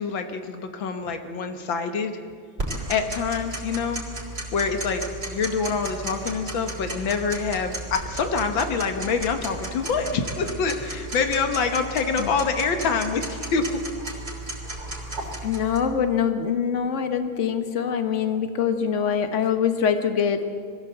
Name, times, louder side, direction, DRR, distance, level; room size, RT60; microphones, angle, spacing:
voice 1, 0.0-2.1 2.9-4.0 4.5-13.8, left 5 dB, 75° left, 7 dB, 2.0 m, -26 dB
Tick-tock, 2.6-15.8, right 2 dB, 30° right, 4.0 m, -34 dB
voice 2, 15.4-20.4, left 7 dB, 40° left, 8 dB, 1.4 m, -24 dB
22.5 x 15.0 x 7.9 m, 2.2 s
omnidirectional pair, 2.1 m